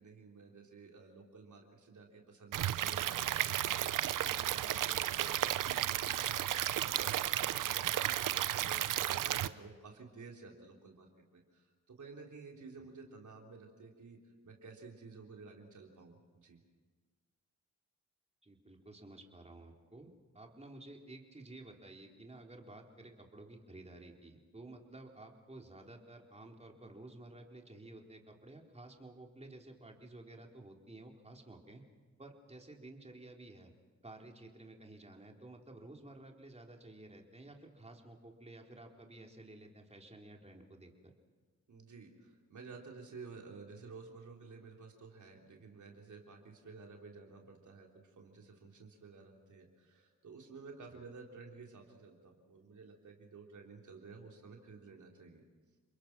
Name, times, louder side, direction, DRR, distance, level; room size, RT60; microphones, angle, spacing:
voice 1, 0.0-16.6 41.7-55.4, right 4 dB, 70° right, 1 dB, 3.7 m, -53 dB
Stream / Liquid, 2.5-9.5, right 12 dB, 85° right, 0.7 m, -33 dB
voice 2, 18.4-31.8 32.2-33.7 34.0-41.1 50.9-51.0, right 2 dB, 20° right, 1 dB, 3.8 m, -53 dB
30.0 x 21.5 x 6.1 m, 1.4 s
cardioid pair, 60°, 31 cm